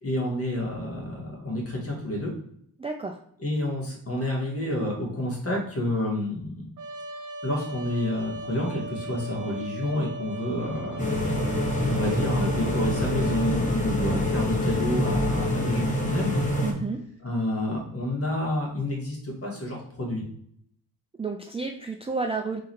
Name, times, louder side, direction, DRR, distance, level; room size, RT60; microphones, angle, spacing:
voice 1, 0.0-2.3 3.4-6.5 7.4-11.2 11.9-16.4 17.2-20.2, left 1 dB, 35° left, -1 dB, 1.8 m, -29 dB
voice 2, 2.8-3.2 16.6-17.0 21.2-22.6, right 4 dB, 15° right, 3 dB, 0.4 m, -31 dB
Trumpet, 6.8-13.6, right 2 dB, 50° right, 0.9 m, -38 dB
sound 1, 11.0-16.7, left 1 dB, 20° left, 1.1 m, -26 dB
3.7 x 3.1 x 4.3 m, 0.67 s
cardioid pair, 95°, 39 cm